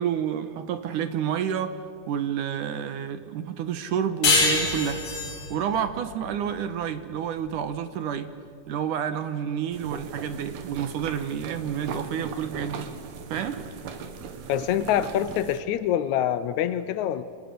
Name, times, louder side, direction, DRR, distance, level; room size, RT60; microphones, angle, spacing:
voice 1, 0.0-1.8 2.1-5.0 5.5-8.3 8.7-12.9 13.3-13.6, right 8 dB, 70° right, 10 dB, 2.3 m, -29 dB
sound 1, 4.2-7.4, left 3 dB, 40° left, 4.1 m, -25 dB
sound 2, 9.7-15.6, right 5 dB, 85° right, 3.8 m, -39 dB
voice 2, 14.5-17.2, left 10 dB, 85° left, 13 dB, 1.6 m, -25 dB
29.0 x 26.5 x 6.8 m, 2.2 s
omnidirectional pair, 4.5 m